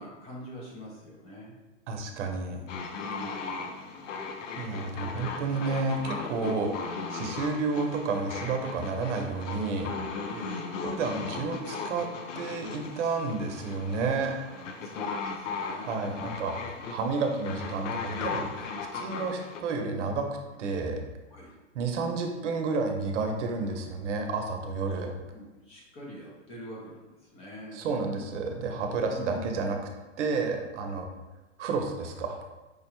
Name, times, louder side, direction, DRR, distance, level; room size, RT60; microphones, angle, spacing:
voice 1, 0.0-1.5 2.9-4.4 6.5-6.6 10.2-11.1 14.5-16.3 21.3-21.5 25.3-27.8 29.1-29.6 30.8-31.0, equal, 15° left, -4 dB, 0.5 m, -44 dB
voice 2, 1.9-2.6 4.6-6.7 7.1-9.9 10.8-12.1 12.4-14.3 15.8-20.3 20.6-21.0 21.7-25.1 27.7-29.8 30.2-31.1 31.6-32.4, right 4 dB, 70° right, 4 dB, 0.7 m, -31 dB
sound 1, 2.7-19.6, left 4 dB, 80° left, 0.6 m, -37 dB
4.8 x 2.1 x 2.9 m, 1.1 s
hypercardioid pair, 140°, 37 cm